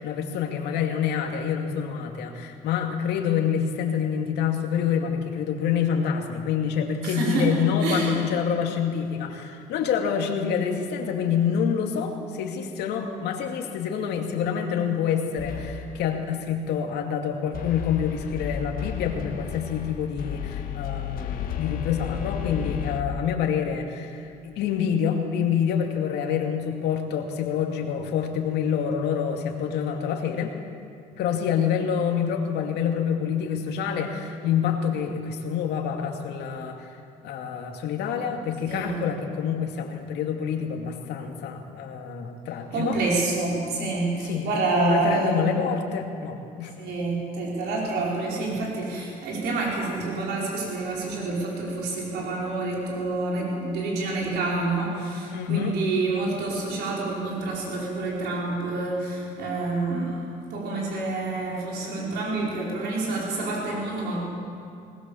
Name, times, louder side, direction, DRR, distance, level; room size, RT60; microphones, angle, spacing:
voice 1, 0.0-30.6 31.2-37.0 37.2-43.0 44.3-44.4 44.8-46.8 55.3-55.7, left 7 dB, 80° left, 3 dB, 2.5 m, -27 dB
voice 2, 7.0-8.2 38.6-39.0 42.7-45.6 46.8-60.2 60.5-64.2, right 3 dB, 80° right, -3 dB, 5.0 m, -27 dB
sound 1, 15.4-16.1 17.5-23.0, left 9 dB, 60° left, 1.7 m, -33 dB
19.5 x 19.5 x 7.2 m, 2.4 s
cardioid pair, 110°, 17 cm